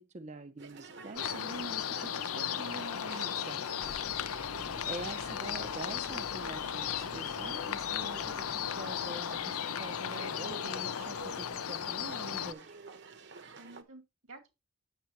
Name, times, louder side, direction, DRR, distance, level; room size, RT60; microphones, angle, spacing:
voice 1, 0.0-3.9 4.9-12.8, right 2 dB, 30° right, 0.5 m, -45 dB
sound 1, 0.6-13.8, right 4 dB, 55° right, 1.0 m, -50 dB
sound 2, 1.2-12.5, left 9 dB, 90° left, 0.6 m, -36 dB
voice 2, 2.0-2.5 4.5-4.7 13.5-14.5, right 2 dB, 85° right, 2.3 m, -53 dB
sound 3, 3.8-10.1, left 2 dB, 30° left, 0.5 m, -53 dB
9.3 x 7.3 x 3.0 m
head